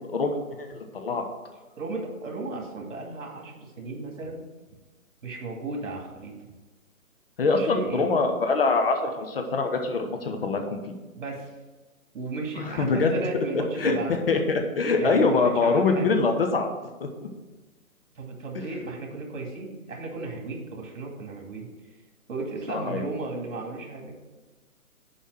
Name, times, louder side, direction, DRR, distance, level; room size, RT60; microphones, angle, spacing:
voice 1, 0.1-1.2 7.4-10.8 12.6-13.4 13.8-14.0 14.3-16.7 17.0-17.1 22.7-23.0, left 3 dB, 40° left, 4 dB, 0.8 m, -24 dB
voice 2, 1.8-4.4 5.2-6.3 7.5-8.1 11.1-11.5 12.1-14.1 15.0-16.2 18.1-21.7 22.3-24.1, right 3 dB, 60° right, 0 dB, 2.4 m, -35 dB
5.6 x 5.1 x 6.2 m, 1.2 s
hypercardioid pair, 150°, 42 cm